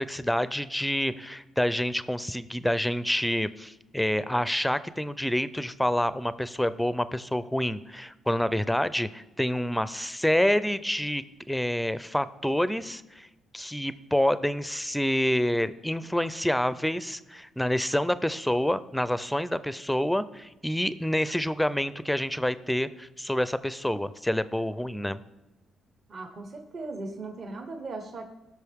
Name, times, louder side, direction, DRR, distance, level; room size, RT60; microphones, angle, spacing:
voice 1, 0.0-13.3 13.5-25.2, equal, 5° left, 15 dB, 0.5 m, -27 dB
voice 2, 26.1-28.2, right 3 dB, 50° right, 4 dB, 1.1 m, -38 dB
17.0 x 6.3 x 3.6 m, 1.0 s
cardioid pair, 90°, 0 cm